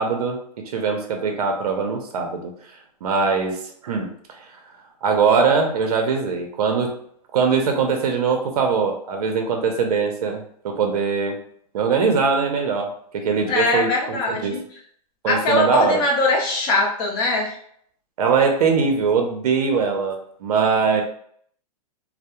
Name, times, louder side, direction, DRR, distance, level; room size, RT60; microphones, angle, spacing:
voice 1, 0.0-2.5 3.0-4.5 5.0-7.0 7.3-11.4 11.7-14.6 15.2-16.0 18.2-21.0, right 5 dB, 70° right, 3 dB, 0.5 m, -22 dB
voice 2, 13.5-14.6 15.3-17.6, left 2 dB, 25° left, -1 dB, 0.5 m, -21 dB
2.2 x 2.0 x 2.8 m, 0.64 s
hypercardioid pair, 155°, 20 cm